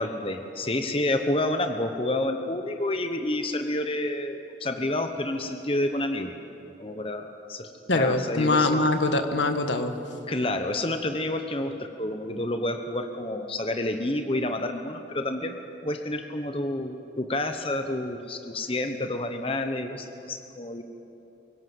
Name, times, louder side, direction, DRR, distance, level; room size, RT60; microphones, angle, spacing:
voice 1, 0.0-6.3 6.8-8.8 10.3-15.6 15.8-20.8, left 1 dB, 30° left, 6 dB, 1.0 m, -29 dB
voice 2, 7.9-9.9, left 2 dB, 85° left, 7 dB, 1.6 m, -23 dB
23.0 x 17.5 x 7.9 m, 2.9 s
head